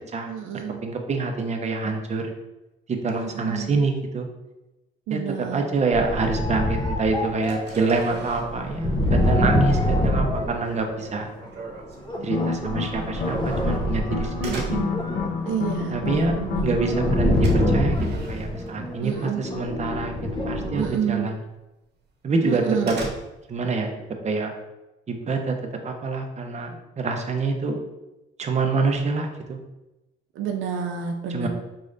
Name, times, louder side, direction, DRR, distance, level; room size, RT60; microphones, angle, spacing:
voice 1, 0.3-0.8 3.1-3.8 5.1-5.6 14.5-14.9 15.4-16.7 19.0-19.5 20.8-21.3 22.4-23.0 30.4-31.5, right 7 dB, 80° right, 3 dB, 0.5 m, -29 dB
voice 2, 0.8-2.3 2.9-4.3 5.1-5.2 5.5-11.3 12.2-13.4 13.6-15.0 15.9-16.4 16.6-20.1 20.5-21.4 22.2-23.0 23.5-23.9 24.2-24.5 25.1-25.5 25.8-26.7 27.0-27.8 28.4-29.6 31.3-31.5, right 3 dB, 35° right, 3 dB, 0.7 m, -26 dB
sound 1, 5.9-11.3 12.0-21.0, left 1 dB, 25° left, 0.7 m, -26 dB
sound 2, 7.4-19.3 19.6-20.1 20.4-20.6 21.0-21.1 21.6-21.7 22.0-23.7, right 3 dB, 60° right, 1.0 m, -41 dB
sound 3, 12.2-17.2, left 5 dB, 60° left, 0.6 m, -30 dB
4.7 x 3.2 x 2.6 m, 1.0 s
cardioid pair, 90°, 20 cm